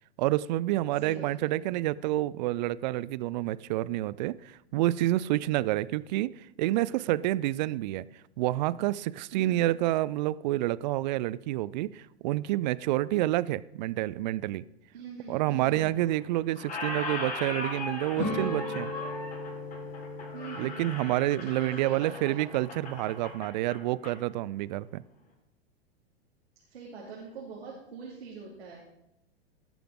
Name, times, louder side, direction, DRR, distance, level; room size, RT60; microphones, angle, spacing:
voice 1, 0.2-8.1 8.4-14.6 15.3-18.9 20.6-25.0, right 16 dB, 45° right, 0.4 m, -28 dB
voice 2, 1.0-1.5 9.3-9.6 14.9-15.9 20.3-20.8 21.6-22.4 26.7-28.8, right 5 dB, 75° right, 3.0 m, -43 dB
Squeak, 15.7-16.3 16.5-24.2, left 2 dB, 25° left, 4.1 m, -39 dB
sound 1, 18.1-23.3, left 2 dB, 45° left, 3.4 m, -38 dB
18.0 x 6.8 x 3.8 m
hypercardioid pair, 105°, 32 cm